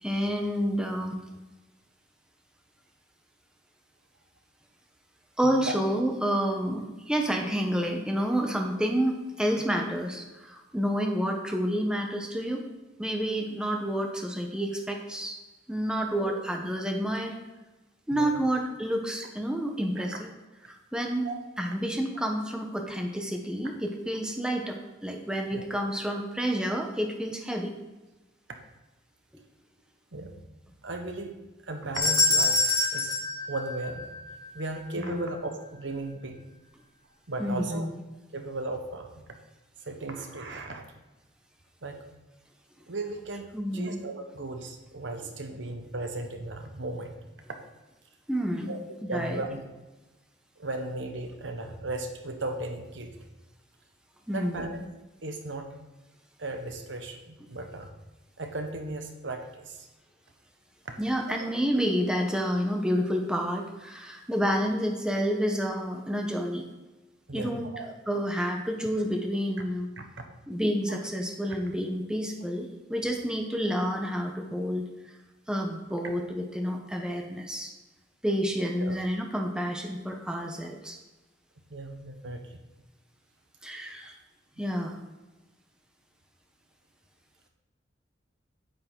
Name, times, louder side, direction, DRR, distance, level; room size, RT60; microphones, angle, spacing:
voice 1, 0.0-1.2 5.4-12.6 13.0-15.4 15.7-17.3 18.1-20.3 20.7-21.3 21.6-24.8 25.0-27.7 35.0-35.2 37.4-37.9 43.5-44.0 48.3-48.8 49.1-49.4 54.3-54.7 61.0-66.7 67.3-69.9 70.5-74.9 75.5-77.7 78.2-81.0 83.6-84.2 84.6-85.0, equal, 5° right, 2 dB, 0.9 m, -29 dB
voice 2, 18.1-18.5 20.0-20.1 21.2-21.4 25.5-25.6 30.1-30.3 30.8-31.3 31.7-32.6 32.9-33.2 33.5-34.1 34.5-36.4 37.3-37.9 38.3-39.3 39.8-40.8 41.8-42.0 42.9-43.5 43.7-47.2 48.7-48.8 49.1-49.6 50.6-53.1 54.3-54.8 55.2-55.7 56.4-57.9 58.4-59.9 61.4-61.5 67.3-67.9 70.0-70.1 78.8-79.0 81.7-82.4, right 2 dB, 70° right, 4 dB, 1.2 m, -36 dB
sound 1, 31.9-34.4, left 3 dB, 20° left, 2.7 m, -25 dB
8.9 x 8.7 x 3.8 m, 1.1 s
head